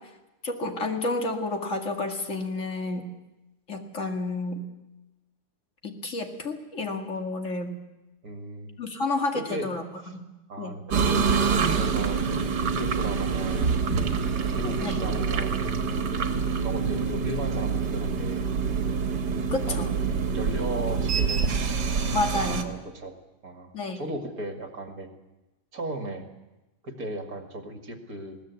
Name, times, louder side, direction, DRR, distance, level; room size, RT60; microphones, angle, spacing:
voice 1, 0.4-3.1 3.7-4.6 5.8-7.8 8.8-10.2 10.6-10.8 14.8-15.0 19.5-19.9 22.1-22.7 23.7-24.0, left 2 dB, 45° left, 4 dB, 2.4 m, -30 dB
voice 2, 8.2-8.8 9.3-9.7 10.0-10.2 10.5-13.6 14.4-15.7 16.6-18.5 19.6-21.7 22.5-23.1 23.4-25.1 25.7-26.3 26.8-28.4, right 1 dB, 60° right, 5 dB, 2.6 m, -36 dB
sound 1, 10.9-22.6, right 5 dB, 75° right, 2.1 m, -26 dB
20.5 x 18.5 x 8.4 m, 1.0 s
omnidirectional pair, 1.8 m